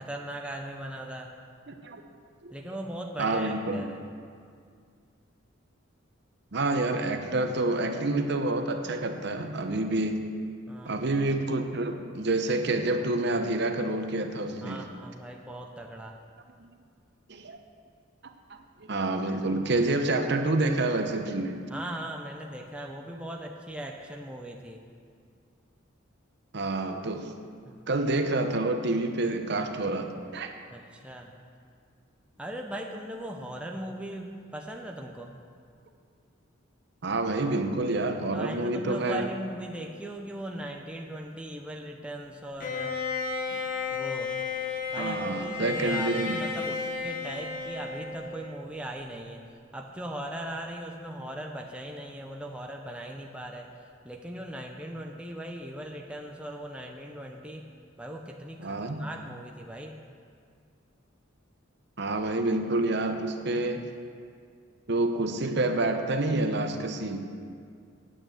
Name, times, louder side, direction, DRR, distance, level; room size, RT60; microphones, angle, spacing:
voice 1, 0.0-1.3 2.5-4.0 10.7-11.0 14.6-16.2 21.7-24.8 27.6-27.9 30.7-31.3 32.4-35.3 38.3-43.0 43.5-43.6 43.9-44.3 44.9-49.4 49.7-53.7 54.0-57.7 58.0-60.0, right 1 dB, 5° right, 1 dB, 0.6 m, -39 dB
voice 2, 1.7-2.0 2.4-2.5 3.2-3.9 6.5-10.3 10.8-14.8 16.6-16.7 17.3-17.6 18.2-18.3 18.8-21.6 26.5-27.3 27.9-30.5 37.0-39.3 45.0-46.4 58.6-59.0 62.0-63.8 64.9-67.2, right 2 dB, 55° right, 6 dB, 0.8 m, -28 dB
Bowed string instrument, 42.6-48.7, left 4 dB, 45° left, 1.1 m, -33 dB
9.0 x 8.7 x 7.8 m, 2.2 s
head